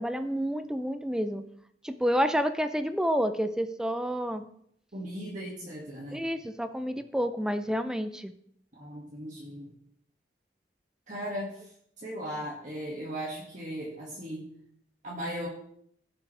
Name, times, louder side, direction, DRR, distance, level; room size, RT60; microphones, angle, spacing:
voice 1, 0.0-1.4 1.8-4.4 6.1-8.3, equal, 5° right, 10 dB, 0.5 m, -29 dB
voice 2, 4.9-6.2 8.7-9.7 11.1-11.5 12.0-14.4 15.0-15.5, equal, 45° right, -5 dB, 2.0 m, -37 dB
17.0 x 7.1 x 3.3 m, 0.68 s
head